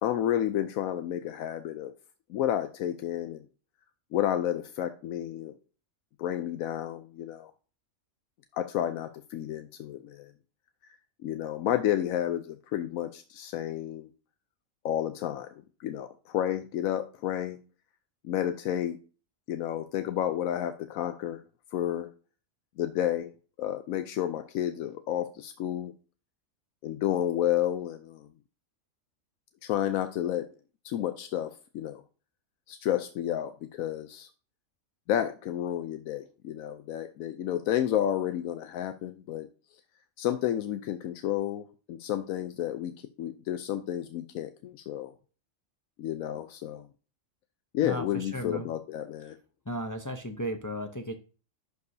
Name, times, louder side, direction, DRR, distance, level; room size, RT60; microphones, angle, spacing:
voice 1, 0.0-1.9 2.3-3.4 4.1-5.5 6.2-7.5 8.5-10.3 11.2-14.1 14.8-15.5 15.8-17.6 18.2-19.0 19.5-21.4 21.7-22.1 22.8-23.3 23.6-25.9 26.8-28.3 29.6-30.5 30.8-32.0 32.7-34.3 35.1-39.5 40.2-45.1 46.0-46.8 47.7-49.4, left 11 dB, 85° left, 9 dB, 1.0 m, -31 dB
voice 2, 47.8-48.7 49.7-51.1, equal, 25° left, 5 dB, 0.4 m, -35 dB
11.5 x 4.8 x 2.7 m, 0.36 s
omnidirectional pair, 1.4 m